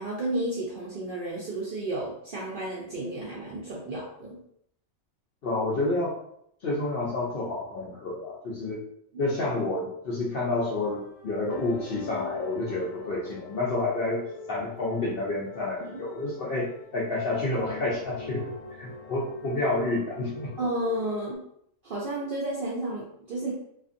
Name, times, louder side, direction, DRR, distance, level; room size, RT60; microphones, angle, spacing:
voice 1, 0.0-4.3 9.1-9.2 15.8-15.9 20.6-21.4 21.8-23.5, right 1 dB, 60° right, -5 dB, 0.5 m, -32 dB
voice 2, 5.4-6.1 6.6-8.8 9.2-18.5 18.8-20.5, left 2 dB, 60° left, -4 dB, 0.6 m, -29 dB
sound 1, 10.3-21.4, left 3 dB, 75° left, 1.0 m, -43 dB
2.5 x 2.5 x 2.4 m, 0.71 s
omnidirectional pair, 1.4 m